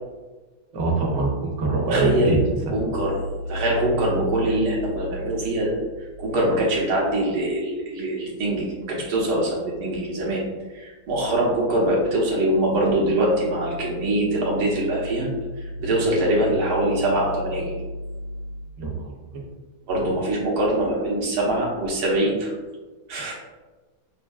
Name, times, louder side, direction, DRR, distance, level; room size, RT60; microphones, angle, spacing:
voice 1, 0.7-2.4 18.8-19.1, right 3 dB, 65° right, -1 dB, 1.4 m, -23 dB
voice 2, 1.9-2.4 2.7-10.4 10.7-15.3 15.5-17.8 19.9-22.5 23.1-23.3, right 1 dB, 90° right, -3 dB, 2.0 m, -23 dB
6.9 x 2.6 x 2.3 m, 1.2 s
omnidirectional pair, 2.3 m